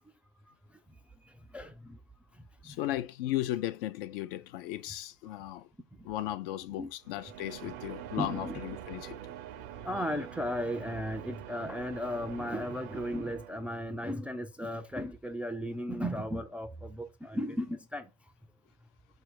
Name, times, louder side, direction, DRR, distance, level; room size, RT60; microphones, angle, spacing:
voice 1, 1.5-2.0 2.7-2.8 6.8-6.9 8.2-8.6 9.8-18.1, equal, 5° right, 0.3 m, -35 dB
voice 2, 2.6-5.7 6.0-9.2, left 14 dB, 60° left, 0.5 m, -36 dB
sound 1, 7.0-13.9, right 11 dB, 50° right, 0.5 m, -45 dB
4.3 x 2.5 x 4.5 m
hypercardioid pair, 75°, 32 cm